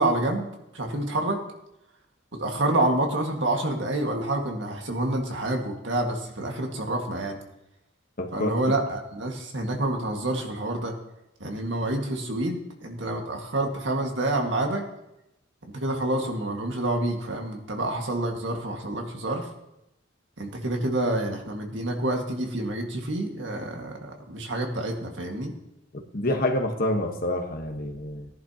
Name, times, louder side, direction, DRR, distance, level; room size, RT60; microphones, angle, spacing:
voice 1, 0.0-1.4 2.4-7.4 8.3-10.9 11.4-14.9 15.7-19.5 20.4-25.5, right 1 dB, 70° right, 2 dB, 1.8 m, -28 dB
voice 2, 8.2-8.5 25.9-28.3, left 1 dB, 50° left, 4 dB, 1.3 m, -27 dB
18.0 x 11.0 x 2.9 m, 0.88 s
head